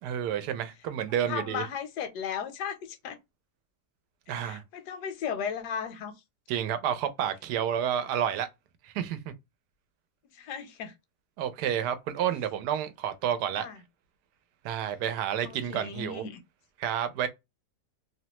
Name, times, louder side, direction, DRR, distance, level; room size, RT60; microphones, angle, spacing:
voice 1, 0.0-1.7 4.3-4.6 6.5-8.5 8.8-9.3 11.4-13.7 14.6-16.2 16.8-17.3, right 9 dB, 85° right, 1.2 m, -30 dB
voice 2, 1.3-3.2 4.3-6.1 10.4-10.9 13.6-13.8 15.4-16.4, left 7 dB, 85° left, 1.2 m, -36 dB
2.9 x 2.1 x 2.8 m
omnidirectional pair, 1.7 m